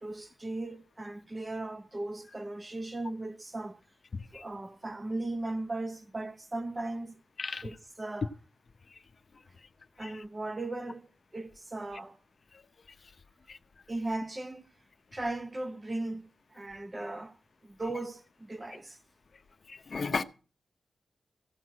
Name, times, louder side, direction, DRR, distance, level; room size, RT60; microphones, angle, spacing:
voice 1, 0.0-3.8 4.3-7.2 7.6-8.3 10.0-12.2 13.9-14.7 15.1-17.4 17.6-19.0, right 2 dB, 20° right, 0.7 m, -37 dB
voice 2, 4.1-4.4 7.4-7.7 8.9-9.0 10.0-10.2 13.5-13.6 19.7-20.2, left 4 dB, 45° left, 0.7 m, -35 dB
15.5 x 6.3 x 7.5 m
wide cardioid pair, 105°, 0 cm